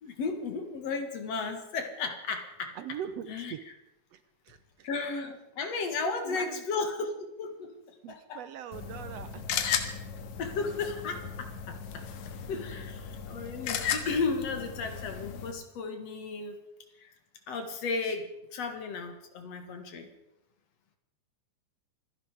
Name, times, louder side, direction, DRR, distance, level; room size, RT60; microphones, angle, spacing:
voice 1, 0.0-2.8 3.3-3.5 4.8-7.8 8.1-8.4 10.4-16.6 17.0-17.1 17.5-20.1, left 4 dB, 60° left, 6 dB, 2.9 m, -34 dB
voice 2, 2.8-3.7 4.1-4.9 6.0-6.6 8.0-10.0, right 9 dB, 70° right, 12 dB, 1.7 m, -42 dB
sound 1, 8.7-15.5, left 7 dB, 85° left, 2.7 m, -36 dB
26.0 x 11.0 x 4.9 m, 0.89 s
omnidirectional pair, 3.3 m